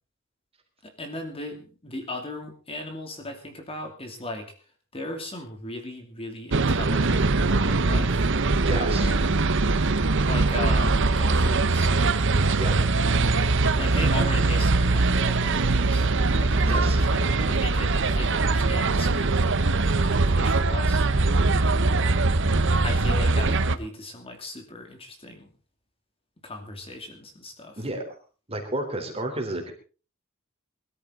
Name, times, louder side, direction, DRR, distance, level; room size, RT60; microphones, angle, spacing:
voice 1, 0.8-4.5 4.9-8.3 8.7-9.3 10.2-12.0 13.8-19.3 19.6-21.1 22.8-25.5 26.4-27.8, left 1 dB, 25° left, 4 dB, 2.7 m, -37 dB
sound 1, 6.5-23.7, right 3 dB, 60° right, 1.0 m, -22 dB
voice 2, 8.6-9.1 12.6-12.8 16.6-17.0 27.8-28.0 28.5-29.7, right 1 dB, 30° right, 3 dB, 3.7 m, -31 dB
21.0 x 13.0 x 3.8 m, 0.37 s
head